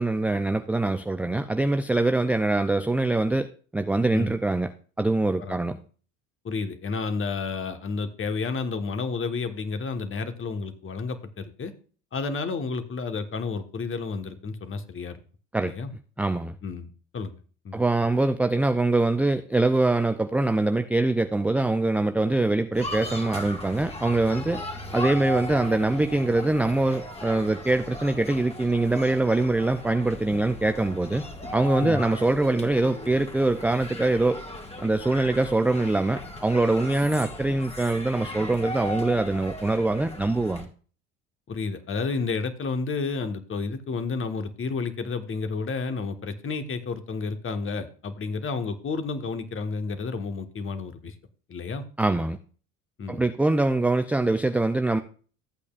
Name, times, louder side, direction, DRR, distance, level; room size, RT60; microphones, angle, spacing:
voice 1, 0.0-3.5 3.7-4.7 5.0-5.8 15.5-15.7 16.2-16.5 17.7-24.6 24.9-31.2 31.5-34.4 34.8-40.7 52.0-52.4 53.1-55.0, right 2 dB, 5° right, 0.4 m, -23 dB
voice 2, 6.4-11.7 12.1-15.2 15.6-15.9 16.6-17.3 17.6-17.8 31.8-32.0 41.5-51.1 51.5-51.8 53.0-53.3, left 4 dB, 30° left, 1.4 m, -31 dB
sound 1, 22.7-40.6, left 1 dB, 15° left, 1.9 m, -37 dB
14.5 x 8.3 x 2.5 m
hypercardioid pair, 70°, 40 cm